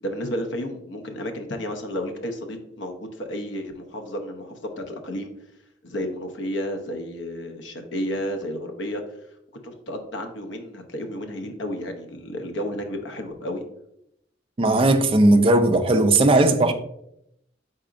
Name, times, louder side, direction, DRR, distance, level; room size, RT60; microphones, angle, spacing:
voice 1, 0.0-5.3 5.8-9.0 9.6-13.6, equal, 70° left, 0.6 m, -32 dB
voice 2, 14.6-16.7, right 2 dB, 30° right, 0.4 m, -17 dB
4.7 x 4.1 x 2.5 m
head